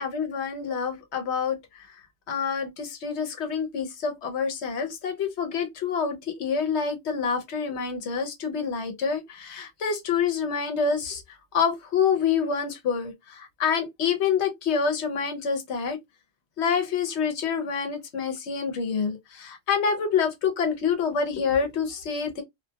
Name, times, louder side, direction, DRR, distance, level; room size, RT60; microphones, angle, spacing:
voice 1, 0.0-2.0 2.3-16.0 16.6-22.4, left 6 dB, 90° left, 1.0 m, -27 dB
2.4 x 2.2 x 2.6 m
omnidirectional pair, 1.1 m